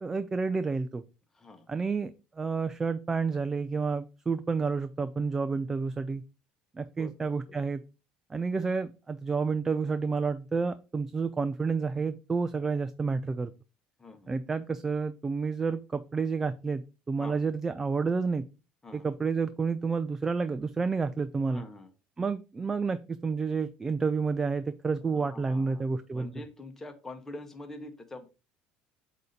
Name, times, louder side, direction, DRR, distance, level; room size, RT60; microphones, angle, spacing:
voice 1, 0.0-1.0 1.7-2.1 2.4-6.2 6.7-7.8 8.3-13.5 14.3-18.4 18.9-21.6 22.2-26.3, right 4 dB, 15° right, 11 dB, 0.3 m, -30 dB
voice 2, 1.3-1.7 7.0-7.6 14.0-14.3 17.2-17.4 18.8-19.1 21.5-21.9 25.0-25.8 26.1-28.3, left 2 dB, 15° left, 6 dB, 1.1 m, -45 dB
8.1 x 2.8 x 5.1 m, 0.32 s
cardioid pair, 150°, 3 cm